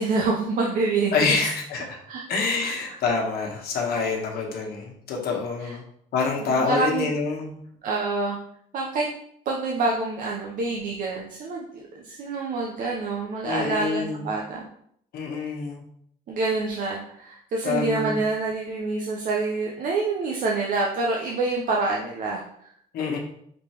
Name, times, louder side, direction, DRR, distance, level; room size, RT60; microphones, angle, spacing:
voice 1, 0.0-1.4 2.1-2.2 2.5-2.7 5.6-5.7 6.4-7.1 7.8-8.4 8.7-9.1 9.5-14.7 16.3-22.4, right 3 dB, 55° right, -1 dB, 0.7 m, -27 dB
voice 2, 1.1-2.0 2.3-5.8 6.1-7.6 13.4-14.3 15.1-15.8 17.6-18.2 22.9-23.2, left 4 dB, 70° left, 0 dB, 1.2 m, -26 dB
5.2 x 3.2 x 2.9 m, 0.68 s
cardioid pair, 110°, 17 cm